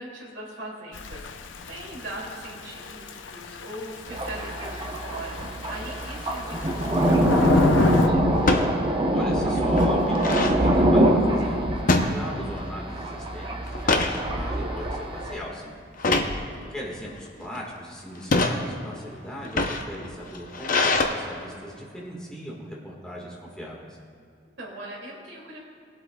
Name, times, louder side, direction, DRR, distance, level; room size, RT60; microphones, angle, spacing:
voice 1, 0.0-8.3 16.3-16.8 24.6-25.6, right 1 dB, 75° right, -4 dB, 2.6 m, -40 dB
Thunder / Rain, 0.9-8.1, left 3 dB, 80° left, 0.6 m, -29 dB
Thunder, 4.1-15.4, right 1 dB, 25° right, 0.9 m, -24 dB
sound 1, 6.6-7.0 8.4-8.7 9.2-9.3 9.6-10.6 11.9-12.7 13.0-13.3 13.7-14.2 14.8-15.1 16.0-16.4 17.1-17.6 18.2-18.6 19.4-21.0, left 3 dB, 45° left, 0.7 m, -24 dB
voice 2, 9.1-15.7 16.7-23.8, equal, 5° left, -4 dB, 1.7 m, -38 dB
19.5 x 8.1 x 2.3 m, 2.3 s
head